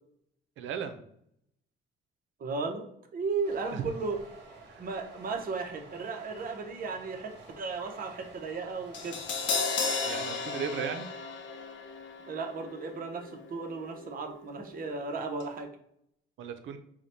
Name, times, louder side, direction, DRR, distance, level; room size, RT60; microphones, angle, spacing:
voice 1, 0.6-1.0 3.7-3.8 10.0-11.1 16.4-16.8, right 7 dB, 80° right, 8 dB, 0.6 m, -35 dB
voice 2, 2.4-2.9 3.1-4.2 4.8-7.3 7.6-9.2 12.3-15.7, right 4 dB, 45° right, 3 dB, 0.8 m, -35 dB
sound 1, 3.4-9.5, right 3 dB, 65° right, 1.2 m, -51 dB
Crash cymbal, 8.9-15.1 15.4-15.5, left 4 dB, 75° left, 0.7 m, -35 dB
4.8 x 2.2 x 4.1 m, 0.72 s
cardioid pair, 90°, 20 cm